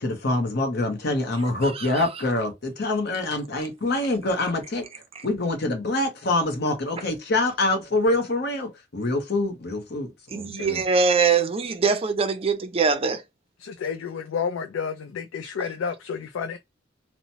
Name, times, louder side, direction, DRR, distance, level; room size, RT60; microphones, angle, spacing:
voice 1, 0.0-4.8 5.2-10.8, left 2 dB, 55° left, 0.8 m, -25 dB
voice 2, 1.6-2.0 10.3-13.2, right 5 dB, 30° right, 0.4 m, -23 dB
voice 3, 13.6-16.6, left 6 dB, 85° left, 0.4 m, -30 dB
2.9 x 2.1 x 2.7 m
head